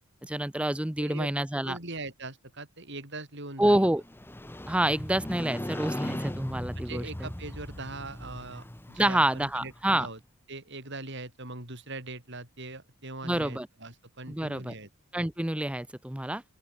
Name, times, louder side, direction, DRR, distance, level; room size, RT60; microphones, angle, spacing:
voice 1, 0.2-1.8 3.6-4.0 4.7-7.3 9.0-10.1 13.2-13.7 14.3-14.7 15.1-16.4, right 1 dB, 5° right, 0.5 m, -27 dB
voice 2, 1.6-3.9 6.8-10.2 10.5-14.9, right 2 dB, 55° right, 6.2 m, -41 dB
Motorcycle, 4.0-9.9, left 1 dB, 10° left, 0.9 m, -38 dB
open air
head